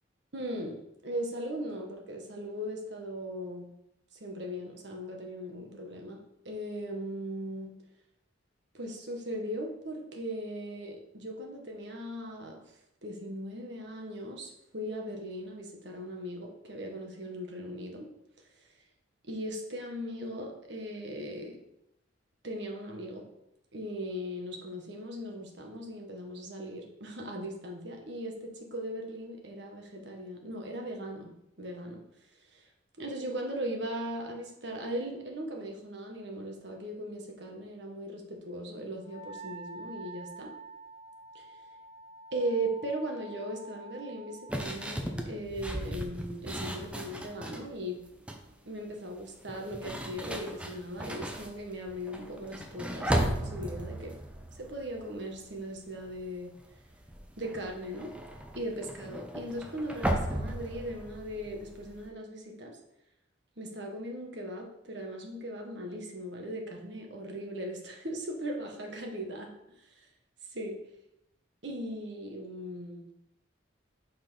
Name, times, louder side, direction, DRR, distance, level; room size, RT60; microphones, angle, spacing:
voice 1, 0.3-0.8 1.0-3.7 4.1-7.7 8.7-12.6 13.0-18.1 19.3-21.6 22.4-23.2 23.7-31.3 31.6-32.0 32.5-32.6 33.0-40.5 41.3-41.5 42.3-48.0 48.6-54.1 54.6-56.5 57.4-58.1 58.5-62.8 63.6-69.5 69.8-70.1 70.5-70.8 71.6-73.1, right 1 dB, 60° right, 1 dB, 1.3 m, -38 dB
Wind instrument woodwind instrument, 39.0-44.6, right 2 dB, 35° left, 2.9 m, -47 dB
sound 1, 44.5-47.7 48.1-48.5 49.4-55.7 55.9-56.3 56.6-62.1, right 1 dB, 5° right, 0.6 m, -36 dB
5.6 x 4.3 x 5.6 m, 0.82 s
head